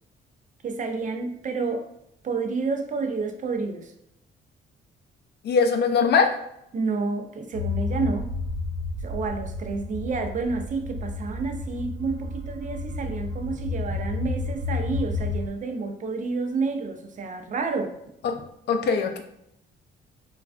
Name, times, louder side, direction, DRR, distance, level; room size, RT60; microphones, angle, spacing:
voice 1, 0.6-1.9 2.2-3.9 6.7-8.3 9.0-17.9, right 4 dB, 40° right, 4 dB, 0.5 m, -29 dB
voice 2, 5.4-6.3 18.2-18.3 18.7-19.2, left 5 dB, 60° left, 6 dB, 0.4 m, -21 dB
sound 1, 7.5-15.5, left 3 dB, 85° right, 0.7 m, -31 dB
3.3 x 2.3 x 2.4 m, 0.77 s
cardioid pair, 90°, 20 cm